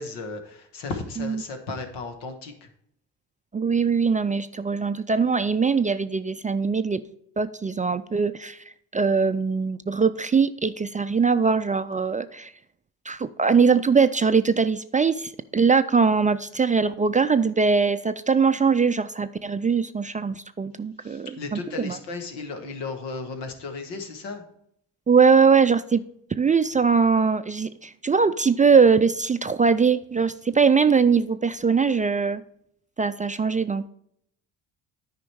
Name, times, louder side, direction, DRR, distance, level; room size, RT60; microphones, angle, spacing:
voice 1, 0.0-2.7 21.0-24.4, left 3 dB, 85° left, 5 dB, 1.5 m, -35 dB
voice 2, 3.5-7.0 7.4-8.6 8.9-12.5 13.1-21.6 21.8-22.0 25.1-26.0 26.4-32.4 33.0-33.9, right 5 dB, 20° right, 11 dB, 0.3 m, -21 dB
9.4 x 5.2 x 4.6 m, 0.72 s
supercardioid pair, 60°, 41 cm